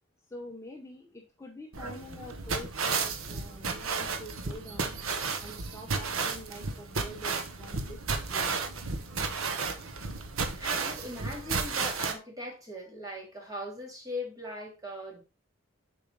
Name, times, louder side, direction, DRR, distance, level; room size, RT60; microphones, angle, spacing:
voice 1, 0.3-4.9 5.4-8.0 8.3-8.6, equal, 15° left, 0.8 m, -46 dB
sound 1, 1.7-12.1, right 4 dB, 80° right, 1.0 m, -33 dB
voice 2, 10.5-15.2, left 1 dB, 15° right, 2.2 m, -40 dB
6.6 x 4.8 x 3.8 m
head